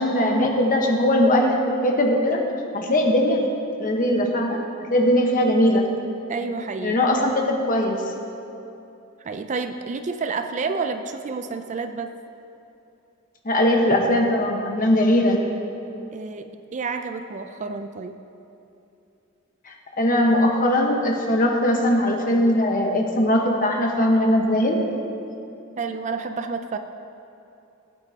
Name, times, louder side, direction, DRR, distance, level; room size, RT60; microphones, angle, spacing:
voice 1, 0.0-2.4 2.7-3.4 3.8-4.6 4.9-5.9 6.8-8.0 13.4-15.4 19.7-24.9, left 1 dB, 40° left, 1 dB, 1.2 m, -20 dB
voice 2, 6.3-7.1 9.2-12.1 16.1-18.2 25.8-26.8, right 4 dB, 35° right, 8 dB, 0.4 m, -30 dB
18.0 x 9.0 x 2.8 m, 2.8 s
head